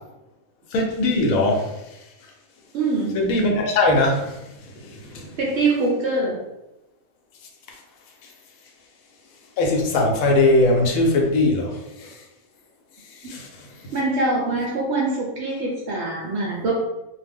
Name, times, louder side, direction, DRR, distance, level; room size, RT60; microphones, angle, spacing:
voice 1, 0.7-1.7 3.1-4.3 4.9-5.3 9.6-12.1 13.3-13.5, left 2 dB, 75° left, 1 dB, 1.0 m, -20 dB
voice 2, 2.7-3.2 5.4-6.4 13.9-16.7, right 3 dB, 65° right, -3 dB, 0.7 m, -23 dB
2.4 x 2.0 x 3.4 m, 0.94 s
omnidirectional pair, 1.5 m